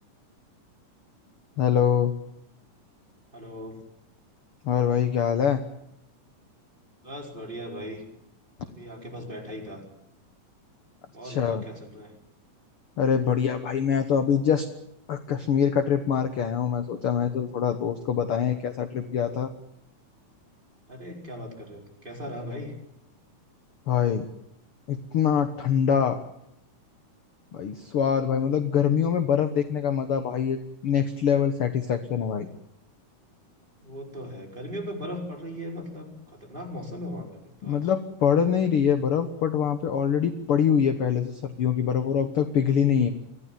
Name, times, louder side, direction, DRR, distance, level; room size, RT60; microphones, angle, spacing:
voice 1, 1.6-2.1 4.6-5.6 11.2-11.6 13.0-14.7 15.1-19.5 23.9-24.3 24.9-26.2 27.5-32.5 37.6-43.1, left 8 dB, 55° left, 9 dB, 1.7 m, -24 dB
voice 2, 3.3-3.8 7.0-8.0 8.6-9.8 11.1-12.1 20.9-22.7 33.8-37.9, equal, 15° right, -1 dB, 5.0 m, -38 dB
24.5 x 16.0 x 9.1 m, 0.80 s
omnidirectional pair, 3.7 m